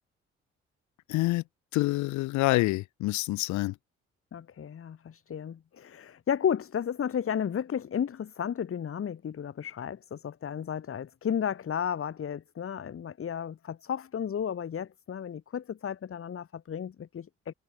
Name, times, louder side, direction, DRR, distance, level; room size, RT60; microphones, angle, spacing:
voice 1, 1.1-1.4 1.7-3.7, left 19 dB, 80° left, 0.7 m, -27 dB
voice 2, 4.3-17.5, left 8 dB, 50° left, 1.4 m, -33 dB
supercardioid pair, 55°, 29 cm